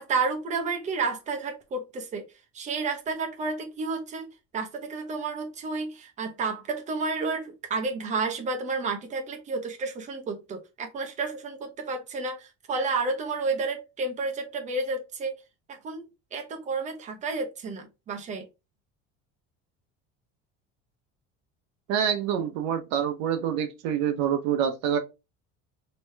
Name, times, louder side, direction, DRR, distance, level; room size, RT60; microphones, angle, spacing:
voice 1, 0.0-2.3 2.5-15.4 15.7-16.0 16.3-18.5, right 4 dB, 25° right, 0.7 m, -31 dB
voice 2, 21.9-25.0, right 8 dB, 65° right, 0.8 m, -26 dB
3.2 x 2.9 x 3.3 m
cardioid pair, 165°, 30 cm